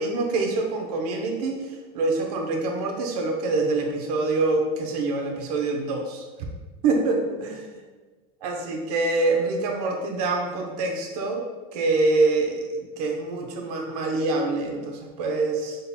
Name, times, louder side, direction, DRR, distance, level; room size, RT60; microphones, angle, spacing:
voice 1, 0.0-6.2 6.8-7.7 8.4-11.4 11.7-15.8, right 3 dB, 75° right, 2 dB, 0.8 m, -25 dB
4.1 x 3.8 x 2.2 m, 1.3 s
supercardioid pair, 160°, 20 cm